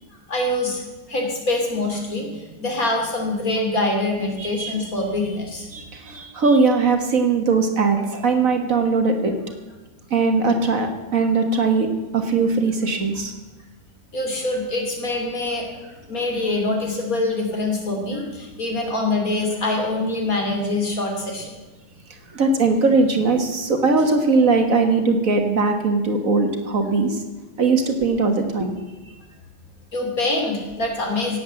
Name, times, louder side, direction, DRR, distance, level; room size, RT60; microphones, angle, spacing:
voice 1, 0.3-0.8 1.1-2.3 2.6-5.7 14.1-15.7 16.1-21.5 29.9-31.4, left 2 dB, 55° left, 1 dB, 3.4 m, -24 dB
voice 2, 4.4-4.9 5.7-9.4 10.1-13.3 22.3-27.2 27.6-28.8, right 4 dB, 55° right, 5 dB, 1.9 m, -20 dB
17.5 x 8.2 x 7.7 m, 1.2 s
omnidirectional pair, 1.8 m